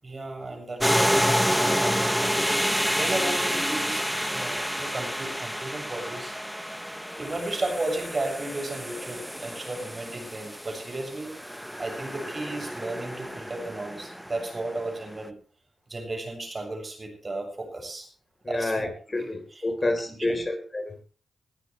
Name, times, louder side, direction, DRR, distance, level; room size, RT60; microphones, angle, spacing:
voice 1, 0.0-2.4 3.0-4.0 4.3-6.3 7.2-15.4 15.9-18.1 18.5-20.5, right 2 dB, 40° right, 3 dB, 7.2 m, -34 dB
sound 1, 0.8-14.9, equal, ahead, 1.1 m, -29 dB
voice 2, 18.4-21.0, left 2 dB, 30° left, 6 dB, 4.0 m, -29 dB
20.5 x 14.0 x 3.3 m, 0.39 s
supercardioid pair, 40°, 0 cm